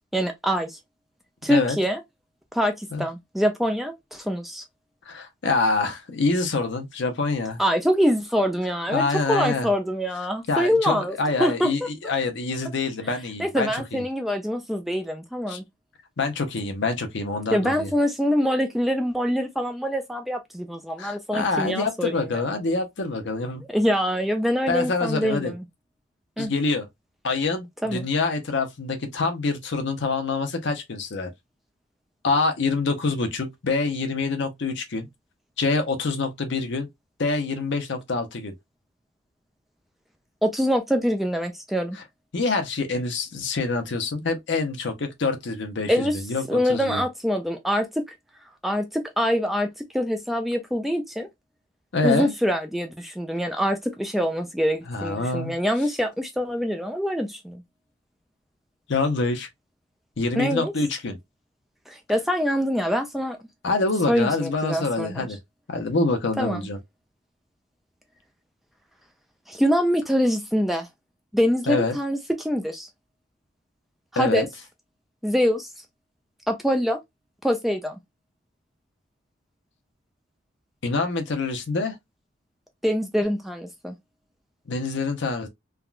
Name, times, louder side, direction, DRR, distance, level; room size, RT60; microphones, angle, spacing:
voice 1, 0.1-0.8 1.4-2.0 2.5-4.6 7.6-11.7 13.4-15.6 17.5-22.3 23.7-25.6 26.4-26.5 27.8-28.1 40.4-42.0 45.9-46.2 46.5-48.0 48.6-49.7 49.9-51.3 52.0-57.6 60.4-60.7 61.9-63.4 64.1-65.3 66.4-66.6 69.5-70.9 71.3-72.9 74.1-74.5 75.2-75.7 76.5-77.0 77.4-78.0 82.8-84.0, equal, ahead, 0.3 m, -24 dB
voice 2, 5.1-7.6 8.9-9.7 10.5-14.0 15.5-15.6 16.2-17.9 21.0-23.6 24.7-25.5 26.4-26.9 27.2-31.3 32.2-35.1 35.6-36.9 37.2-38.5 42.3-47.0 51.9-52.3 54.9-55.5 58.9-59.5 60.2-61.2 63.6-65.4 65.7-66.8 71.7-72.0 74.2-74.4 80.8-82.0 84.7-85.5, left 3 dB, 60° left, 0.7 m, -26 dB
3.4 x 2.3 x 2.3 m
head